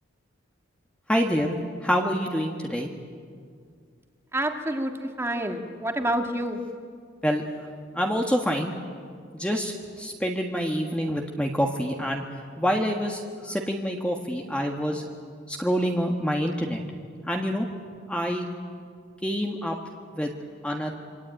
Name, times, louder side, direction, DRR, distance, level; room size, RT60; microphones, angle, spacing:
voice 1, 1.1-1.6 1.8-2.9 7.2-7.4 7.9-8.7 9.3-12.3 12.6-15.0 15.5-16.8 17.3-17.7 18.1-18.5 19.2-19.8 20.1-20.3 20.6-20.9, equal, 5° left, 1 dB, 1.5 m, -26 dB
voice 2, 4.3-6.6, right 1 dB, 15° right, 4 dB, 1.8 m, -28 dB
26.5 x 24.0 x 9.0 m, 2.1 s
head